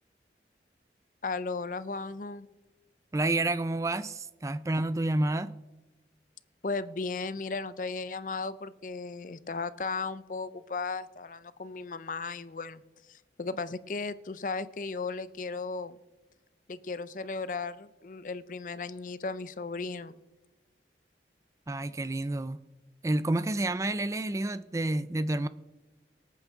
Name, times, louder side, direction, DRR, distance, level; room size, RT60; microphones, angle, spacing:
voice 1, 1.2-2.5 6.6-12.8 13.1-16.0 16.7-20.2, left 4 dB, 45° left, 0.5 m, -36 dB
voice 2, 3.1-5.6 21.7-22.6 23.0-25.5, right 2 dB, 15° right, 0.3 m, -29 dB
25.0 x 9.0 x 3.6 m
head